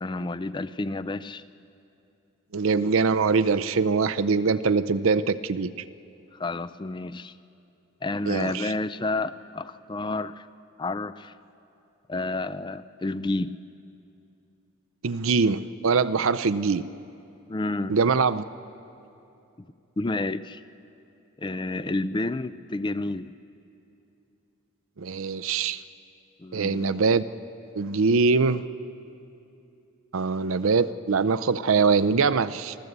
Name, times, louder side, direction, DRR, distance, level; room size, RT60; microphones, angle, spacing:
voice 1, 0.0-1.4 6.3-7.3 8.0-10.5 10.8-11.3 12.1-13.6 17.5-18.0 19.6-19.7 20.0-20.6 21.4-23.3 26.4-26.9, left 2 dB, 20° left, 14 dB, 0.4 m, -30 dB
voice 2, 2.5-5.7 8.3-8.7 15.0-16.9 17.9-18.4 25.0-25.8 26.5-27.2 27.8-28.6 30.1-32.7, right 4 dB, 70° right, 14 dB, 0.5 m, -23 dB
26.0 x 14.0 x 8.1 m, 2.7 s
head